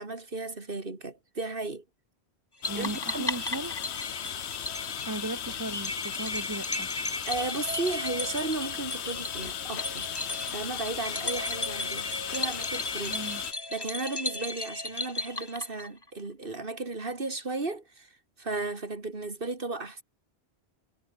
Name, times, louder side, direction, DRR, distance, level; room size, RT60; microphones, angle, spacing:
voice 1, 0.0-1.8 2.7-3.3 7.3-10.1 10.5-13.2 13.7-18.1 18.4-20.0, right 3 dB, 55° right, 2.7 m, -35 dB
sound 1, 2.6-13.5, left 10 dB, 90° left, 1.0 m, -36 dB
sound 2, 2.6-16.1, left 2 dB, 20° left, 2.0 m, -36 dB
voice 2, 2.7-3.7 5.0-5.9 6.2-6.9 13.1-13.4, right 2 dB, 15° right, 1.6 m, -36 dB
omnidirectional pair, 1.1 m